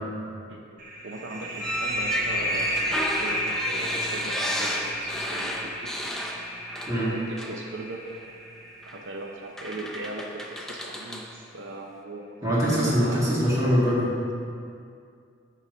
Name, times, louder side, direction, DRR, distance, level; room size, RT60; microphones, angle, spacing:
voice 1, 0.5-5.9 7.0-8.0 8.9-13.3, right 2 dB, 75° right, 1 dB, 0.7 m, -39 dB
sound 1, 0.8-10.1, equal, 45° right, 1.0 m, -32 dB
sound 2, 1.6-7.1 7.4-7.6 8.8-9.0 9.6-11.3, left 1 dB, ahead, 0.5 m, -33 dB
voice 2, 6.9-7.2 12.4-14.1, equal, 20° right, -9 dB, 2.2 m, -23 dB
9.7 x 3.9 x 6.2 m, 2.3 s
head